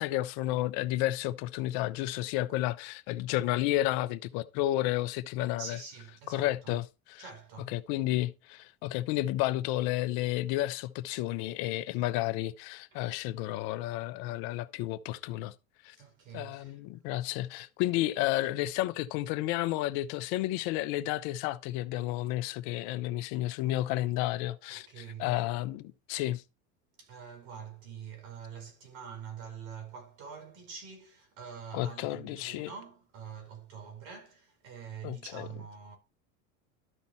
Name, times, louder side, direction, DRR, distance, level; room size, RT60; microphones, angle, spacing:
voice 1, 0.0-5.8 6.3-7.2 7.7-15.5 15.8-16.0 16.3-26.4 31.7-32.7 35.0-35.5, left 15 dB, 60° left, 0.8 m, -31 dB
voice 2, 5.6-6.8 7.2-7.8 12.9-13.0 15.9-16.8 24.7-25.3 27.0-36.0, right 7 dB, 70° right, 4.9 m, -45 dB
12.5 x 5.3 x 4.3 m
hypercardioid pair, 95°, 42 cm